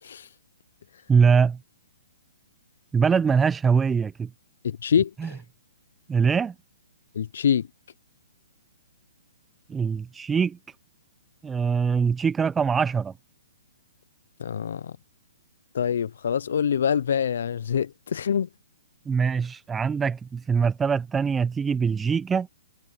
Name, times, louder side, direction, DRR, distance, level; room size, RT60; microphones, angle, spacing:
voice 1, 0.0-0.3 0.9-1.0 4.6-5.4 7.1-7.7 14.4-14.9 15.7-18.5, left 8 dB, 65° left, 0.8 m, -25 dB
voice 2, 1.1-1.6 2.9-4.3 5.2-5.3 6.1-6.5 9.7-10.6 11.4-13.1 19.1-22.5, right 6 dB, 10° right, 0.7 m, -23 dB
hypercardioid pair, 130°, 0 cm